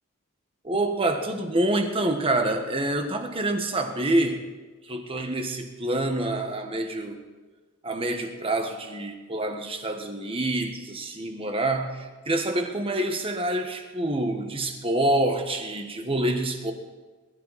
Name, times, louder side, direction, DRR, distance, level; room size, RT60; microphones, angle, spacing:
voice 1, 0.6-4.4 4.8-7.2 7.8-16.7, right 1 dB, 25° right, 5 dB, 1.5 m, -27 dB
22.0 x 12.0 x 4.2 m, 1.3 s
head